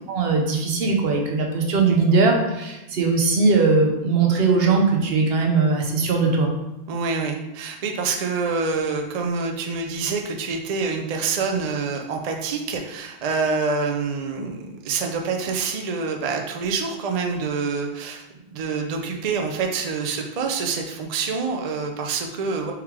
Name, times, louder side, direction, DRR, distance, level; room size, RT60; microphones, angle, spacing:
voice 1, 0.1-6.5, right 4 dB, 70° right, 1 dB, 1.0 m, -20 dB
voice 2, 6.9-22.7, right 4 dB, 50° right, 2 dB, 0.5 m, -26 dB
4.6 x 3.1 x 3.6 m, 0.93 s
omnidirectional pair, 1.1 m